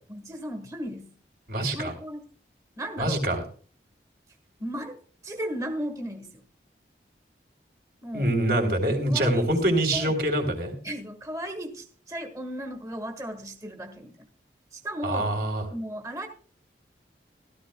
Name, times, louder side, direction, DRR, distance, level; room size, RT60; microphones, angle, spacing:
voice 1, 0.1-1.1 1.7-2.2 2.8-3.2 4.6-5.0 5.2-6.3 8.0-8.3 9.1-9.5 9.9-10.1 10.8-14.3 14.7-15.3 15.7-16.3, equal, 20° right, 5 dB, 1.5 m, -35 dB
voice 2, 1.5-1.9 3.0-3.4 8.1-10.7 15.0-15.7, right 1 dB, 60° right, 4 dB, 3.6 m, -25 dB
16.5 x 13.5 x 2.3 m, 0.42 s
head